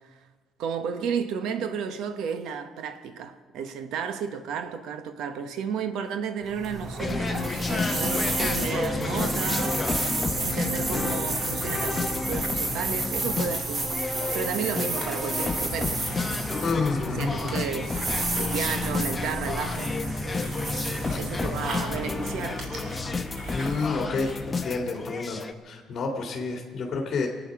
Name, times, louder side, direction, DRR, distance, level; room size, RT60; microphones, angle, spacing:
voice 1, 0.6-16.0 17.2-18.1 18.4-20.0 21.2-22.7, right 7 dB, 80° right, 1.2 m, -33 dB
sound 1, 6.4-22.6, right 2 dB, 35° right, 2.6 m, -32 dB
sound 2, 7.0-25.5, left 3 dB, 20° left, 1.0 m, -31 dB
sound 3, 11.7-24.5, right 3 dB, 65° right, 3.4 m, -46 dB
voice 2, 16.6-17.3 21.1-21.5 23.5-27.3, left 4 dB, 45° left, 2.2 m, -29 dB
24.0 x 9.0 x 6.1 m
cardioid pair, 110°, 0 cm